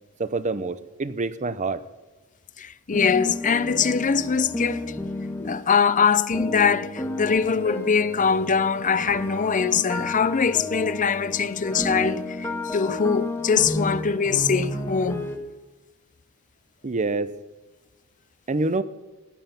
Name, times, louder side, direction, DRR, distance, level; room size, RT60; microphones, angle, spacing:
voice 1, 0.2-1.8 16.8-17.3 18.5-18.8, right 3 dB, 35° right, 0.7 m, -26 dB
voice 2, 2.6-5.0 5.4-15.2, left 6 dB, 35° left, 0.6 m, -23 dB
sound 1, 2.9-5.6 6.3-15.4, left 1 dB, 10° left, 1.5 m, -32 dB
16.0 x 11.0 x 5.8 m
head